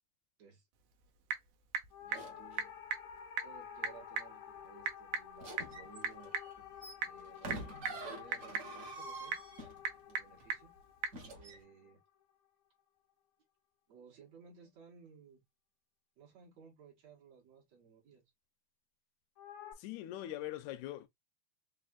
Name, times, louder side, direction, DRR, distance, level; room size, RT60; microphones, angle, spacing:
Typing / Telephone, 0.7-11.2, right 6 dB, 90° right, 2.3 m, -42 dB
sound 1, 1.9-12.4 19.4-19.7, left 9 dB, 65° left, 1.2 m, -51 dB
voice 1, 2.0-2.7 3.4-6.4 7.0-9.4 10.1-10.7 11.4-12.0 13.9-15.4 16.2-18.3, right 6 dB, 65° right, 2.7 m, -58 dB
sound 2, 2.1-2.6 5.4-10.1 11.1-11.6, right 2 dB, 45° right, 1.0 m, -47 dB
voice 2, 19.8-21.1, left 14 dB, 85° left, 1.9 m, -42 dB
5.7 x 2.6 x 2.3 m
omnidirectional pair, 3.3 m